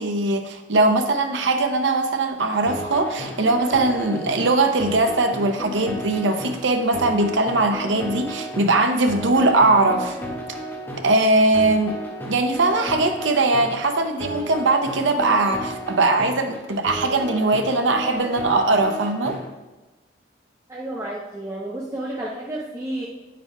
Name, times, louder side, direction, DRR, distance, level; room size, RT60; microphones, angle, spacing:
voice 1, 0.0-10.2 11.0-12.0 12.3-19.4, right 2 dB, 85° right, 6 dB, 0.7 m, -20 dB
sound 1, 2.3-19.4, equal, 15° left, 1.7 m, -33 dB
voice 2, 20.7-23.1, right 1 dB, 15° right, -4 dB, 0.6 m, -31 dB
9.2 x 7.5 x 2.2 m, 1.1 s
head